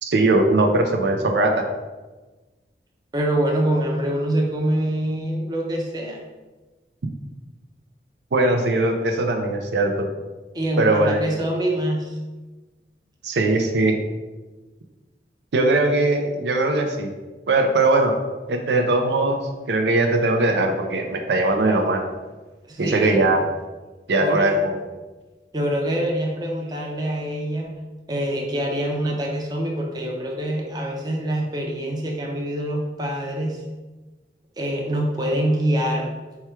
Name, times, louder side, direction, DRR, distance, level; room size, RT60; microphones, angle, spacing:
voice 1, 0.0-1.6 8.3-10.1 10.8-11.3 13.2-13.9 15.5-17.1 17.5-18.1 18.5-19.4 19.7-22.0 22.8-23.4 24.1-24.8, right 2 dB, 80° right, 3 dB, 0.5 m, -20 dB
voice 2, 3.1-6.2 10.5-12.2 22.7-23.3 24.2-24.6 25.5-27.7 28.1-33.6 34.6-36.1, right 1 dB, 25° right, -1 dB, 0.6 m, -25 dB
4.7 x 2.3 x 4.3 m, 1.2 s
head